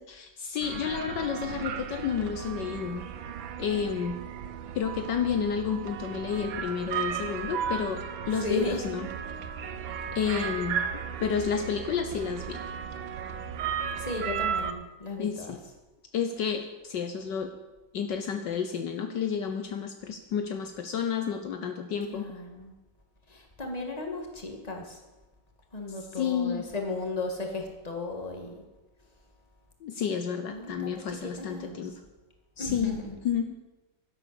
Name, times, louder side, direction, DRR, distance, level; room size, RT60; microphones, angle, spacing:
voice 1, 0.1-3.0 3.6-4.2 4.7-9.1 10.1-10.8 11.2-12.6 15.2-15.6 16.1-17.5 17.9-22.3 26.1-26.7 29.8-31.9 32.6-33.0 33.2-33.5, left 7 dB, 70° left, 7 dB, 1.5 m, -30 dB
sound 1, 0.6-14.7, right 7 dB, 85° right, 1.7 m, -35 dB
voice 2, 8.4-8.8 14.0-15.5 22.1-22.7 23.3-25.0 25.7-28.5 30.5-31.8 32.6-33.2, left 2 dB, 20° left, 2 dB, 2.2 m, -35 dB
12.0 x 11.0 x 7.0 m, 1.1 s
omnidirectional pair, 2.1 m